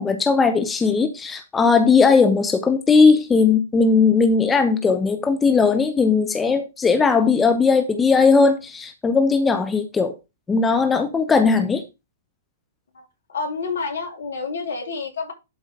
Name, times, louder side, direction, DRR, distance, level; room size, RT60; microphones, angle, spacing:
voice 1, 0.0-10.1 10.5-11.8, left 4 dB, 15° left, 1.1 m, -18 dB
voice 2, 12.9-15.3, left 4 dB, 65° left, 3.2 m, -29 dB
11.5 x 4.9 x 3.8 m
figure-of-eight pair, 110°, 0 cm